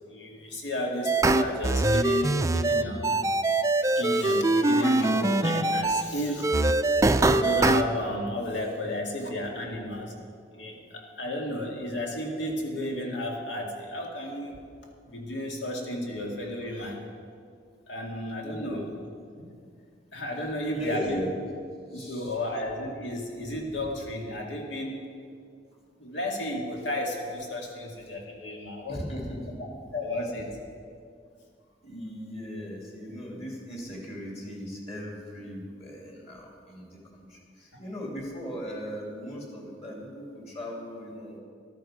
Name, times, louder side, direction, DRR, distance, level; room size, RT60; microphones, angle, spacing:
voice 1, 0.1-3.2 3.8-6.5 7.1-10.1 10.5-14.6 15.1-17.0 17.9-18.8 19.4-19.5 20.1-21.3 21.9-25.0 26.0-29.0 29.6-30.6 37.7-37.8, left 1 dB, 90° left, 0 dB, 2.1 m, -33 dB
sound 1, 1.0-6.0 6.4-7.8, right 2 dB, 15° right, 0.4 m, -23 dB
voice 2, 18.5-18.8 20.7-21.3 21.9-22.3 28.9-29.6 31.8-41.4, equal, 35° left, -1 dB, 2.7 m, -38 dB
13.5 x 12.5 x 5.0 m, 2.3 s
head